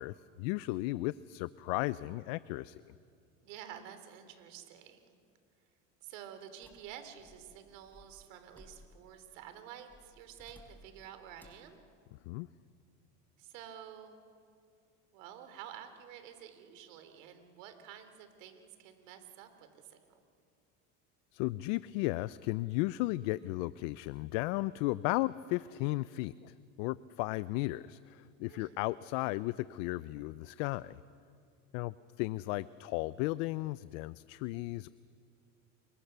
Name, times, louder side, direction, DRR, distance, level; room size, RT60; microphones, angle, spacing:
voice 1, 0.0-2.8 12.3-12.5 21.3-31.0 31.7-34.9, left 19 dB, 75° left, 17 dB, 0.6 m, -35 dB
voice 2, 3.4-5.2 6.0-11.8 13.4-14.2 15.1-20.1 28.5-28.8, right 9 dB, 80° right, 8 dB, 3.3 m, -50 dB
sound 1, 6.6-9.2 9.9-11.0 11.4-11.7, left 1 dB, 5° left, 5.1 m, -59 dB
29.5 x 24.0 x 6.8 m, 2.3 s
supercardioid pair, 110°, 38 cm